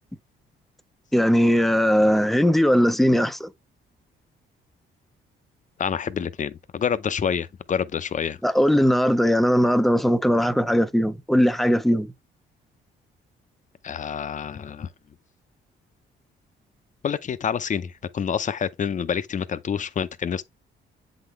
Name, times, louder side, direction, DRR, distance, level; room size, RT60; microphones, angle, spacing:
voice 1, 1.1-3.5 8.4-12.1, equal, ahead, 0.6 m, -19 dB
voice 2, 5.8-8.4 13.8-14.9 17.0-20.4, left 7 dB, 40° left, 0.6 m, -27 dB
7.9 x 4.0 x 3.1 m
cardioid pair, 90°, 20 cm